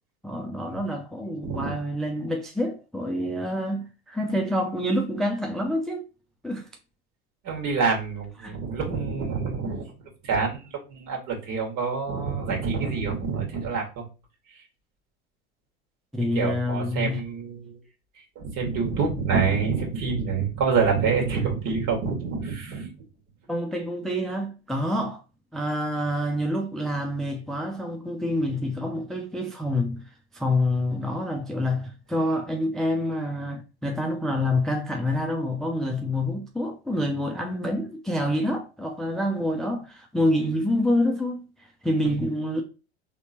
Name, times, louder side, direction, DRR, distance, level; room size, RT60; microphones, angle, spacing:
voice 1, 0.2-6.1 6.4-6.7 8.4-8.6 16.1-17.2 23.5-25.2 25.5-42.6, left 1 dB, ahead, 0.4 m, -27 dB
voice 2, 7.4-9.8 10.2-10.6 10.9-14.0 16.4-17.8 18.4-22.9 42.0-42.1, right 5 dB, 50° right, 1.8 m, -27 dB
4.2 x 3.0 x 2.8 m
hypercardioid pair, 85°, 33 cm